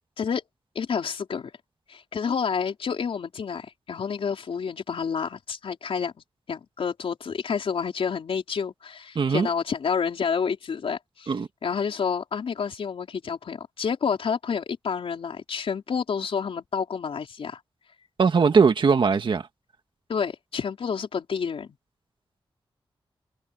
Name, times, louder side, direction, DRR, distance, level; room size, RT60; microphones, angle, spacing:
voice 1, 0.7-1.5 1.9-6.1 6.5-11.3 11.6-17.6 20.1-21.8, left 6 dB, 85° left, 4.4 m, -29 dB
voice 2, 9.2-9.5 11.3-11.5 18.2-19.5, right 5 dB, 60° right, 1.8 m, -20 dB
wide cardioid pair, 135°, 9 cm